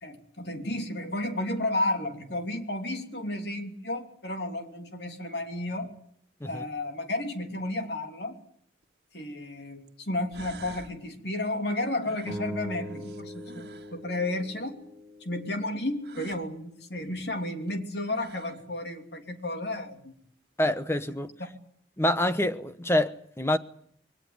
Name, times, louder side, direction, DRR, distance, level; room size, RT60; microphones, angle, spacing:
voice 1, 0.0-5.9 6.4-8.4 9.1-13.7 13.9-14.8 15.2-20.1, left 1 dB, 70° left, 3.1 m, -32 dB
sound 1, 8.8-8.9 9.9-10.0 10.3-11.0 12.0-14.0 16.0-16.4 17.7-17.8 18.0-18.7, right 2 dB, 60° right, 1.9 m, -47 dB
sound 2, 12.2-16.7, equal, 10° right, 4.8 m, -42 dB
voice 2, 20.6-21.3 22.0-23.6, left 1 dB, 15° left, 1.0 m, -26 dB
22.5 x 18.0 x 9.6 m
head